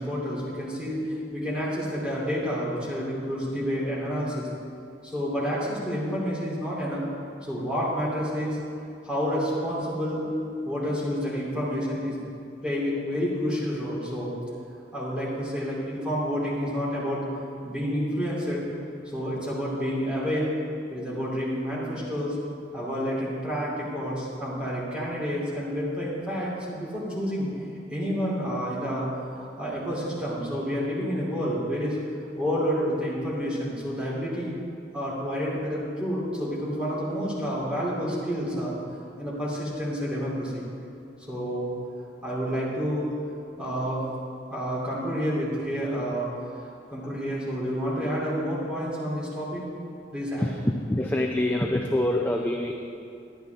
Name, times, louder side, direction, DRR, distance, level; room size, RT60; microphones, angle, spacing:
voice 1, 0.0-4.5 5.0-7.0 7.4-8.6 9.0-10.3 10.6-12.2 12.6-14.3 14.9-17.2 17.6-18.6 19.1-20.5 20.9-22.3 22.7-27.5 27.9-29.1 29.3-32.0 32.4-34.5 34.9-38.8 39.2-40.7 41.3-41.7 42.2-43.1 43.6-44.0 44.5-46.3 46.6-49.6 50.1-50.5, equal, 5° right, -7 dB, 2.8 m, -29 dB
voice 2, 50.9-52.8, left 1 dB, 10° left, 1 dB, 0.5 m, -25 dB
11.0 x 10.5 x 3.5 m, 2.5 s
head